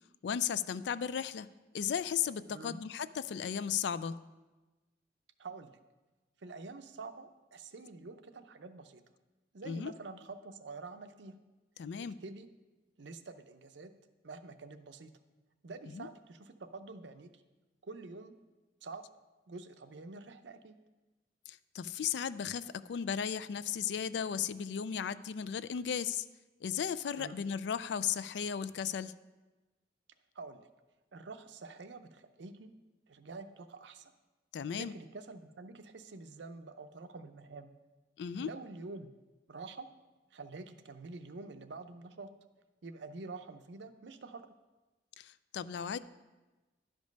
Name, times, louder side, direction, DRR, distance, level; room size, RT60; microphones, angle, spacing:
voice 1, 0.2-1.5 1.7-4.2 9.7-9.9 11.8-12.2 15.9-16.1 21.5-26.3 26.6-29.1 34.5-34.9 38.2-38.5 45.2-46.0, left 8 dB, 65° left, 16 dB, 0.3 m, -35 dB
voice 2, 2.5-2.8 5.4-5.8 6.4-9.0 9.5-11.3 12.2-12.5 13.0-13.9 14.2-15.1 15.6-17.4 17.8-18.4 18.8-19.0 19.5-20.8 27.2-27.4 30.3-30.7 31.1-32.7 33.1-34.1 34.7-37.7 38.4-39.1 39.5-39.9 40.3-42.3 42.8-44.4, right 3 dB, 70° right, 9 dB, 0.6 m, -47 dB
11.5 x 5.2 x 5.2 m, 1.2 s
head